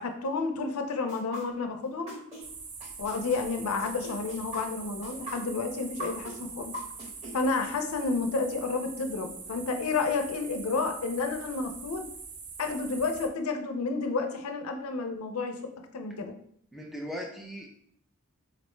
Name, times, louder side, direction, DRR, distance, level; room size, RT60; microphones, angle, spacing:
voice 1, 0.0-2.1 3.0-6.8 7.3-12.0 12.6-16.4, left 4 dB, 80° left, 6 dB, 0.5 m, -31 dB
sound 1, 1.1-2.4 2.8-7.3, equal, 30° right, 1.0 m, -40 dB
sound 2, 2.4-13.3, right 5 dB, 75° right, 0.5 m, -43 dB
voice 2, 16.7-17.8, equal, ahead, -1 dB, 0.4 m, -38 dB
4.0 x 2.1 x 3.0 m, 0.66 s
head